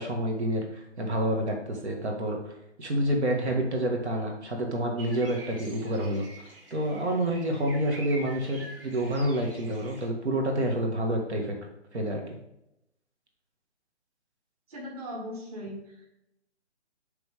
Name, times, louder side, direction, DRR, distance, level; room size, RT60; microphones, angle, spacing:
voice 1, 0.0-2.5 2.8-6.5 6.7-11.6 11.9-12.4, right 1 dB, 70° right, 2 dB, 1.8 m, -28 dB
sound 1, 5.0-10.1, right 2 dB, 50° right, 1.9 m, -46 dB
voice 2, 14.7-16.1, equal, 30° right, -2 dB, 1.7 m, -39 dB
10.5 x 3.5 x 3.5 m, 0.84 s
hypercardioid pair, 155°, 35 cm